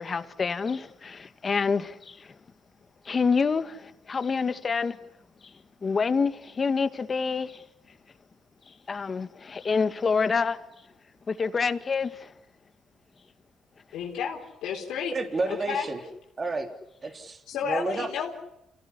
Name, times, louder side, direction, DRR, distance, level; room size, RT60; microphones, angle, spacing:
voice 1, 0.0-2.2 3.1-5.0 5.8-7.6 8.9-10.6 11.3-12.3, left 5 dB, 35° left, 2.0 m, -27 dB
voice 2, 13.9-15.1 15.5-15.9 17.5-18.3, left 7 dB, 85° left, 4.1 m, -31 dB
voice 3, 15.1-16.0 16.4-16.7 17.0-18.1, right 3 dB, 35° right, 3.4 m, -30 dB
28.5 x 18.0 x 9.9 m
cardioid pair, 90°, 0 cm